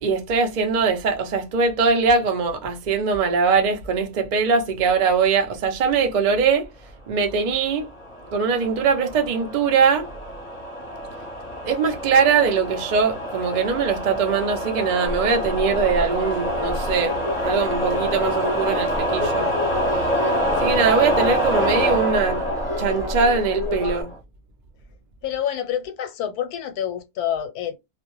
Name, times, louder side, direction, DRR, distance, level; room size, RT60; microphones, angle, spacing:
voice 1, 0.0-6.7 7.1-7.9 8.3-10.1 11.6-19.5 20.6-22.4 22.8-24.1, right 5 dB, 75° right, 0.4 m, -21 dB
sound 1, 7.7-24.2, equal, 35° left, 0.7 m, -27 dB
sound 2, 15.0-24.0, left 1 dB, 5° right, 0.6 m, -30 dB
voice 2, 25.2-27.8, left 10 dB, 85° left, 1.1 m, -27 dB
2.4 x 2.1 x 3.0 m
omnidirectional pair, 1.6 m